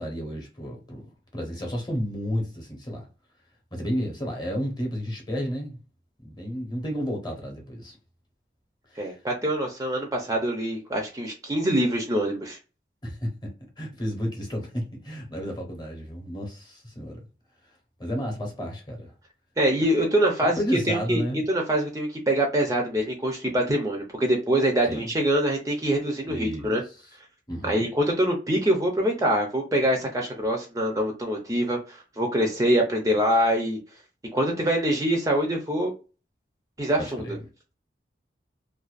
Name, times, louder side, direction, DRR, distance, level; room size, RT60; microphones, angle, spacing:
voice 1, 0.0-3.1 3.7-5.8 6.2-8.0 8.9-9.1 13.0-17.2 18.0-19.1 20.4-21.4 24.9-25.1 26.2-27.0 27.5-27.9 37.0-37.4, equal, 25° left, 0.8 m, -32 dB
voice 2, 9.0-12.6 19.6-20.6 20.9-21.2 21.5-26.8 27.6-33.8 34.3-35.9 36.8-37.2, right 1 dB, 20° right, 0.4 m, -24 dB
2.5 x 2.2 x 2.3 m
head